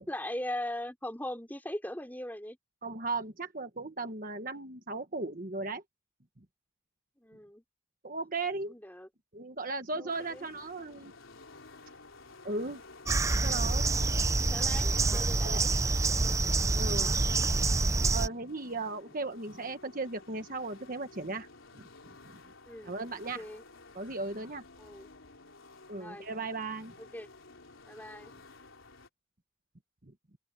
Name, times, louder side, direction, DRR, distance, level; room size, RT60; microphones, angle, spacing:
voice 1, 0.0-2.6 7.2-7.6 8.7-9.1 9.9-10.5 14.0-15.7 22.6-23.0 23.4-23.6 24.8-25.1 26.0-26.3 27.0-27.3 27.9-28.3, left 1 dB, 10° left, 4.1 m, -40 dB
voice 2, 2.8-5.8 6.4-6.5 8.0-8.7 9.3-11.1 12.4-12.8 13.2-15.1 15.4-15.6 16.7-17.1 18.1-21.5 21.7-21.9 22.3-22.4 22.8-23.4 23.9-24.6 25.9-26.9 30.0-30.1, right 3 dB, 40° right, 1.4 m, -37 dB
sound 1, 10.1-29.1, left 3 dB, 70° left, 3.7 m, -53 dB
sound 2, 13.1-18.3, right 3 dB, 15° right, 0.4 m, -27 dB
open air
head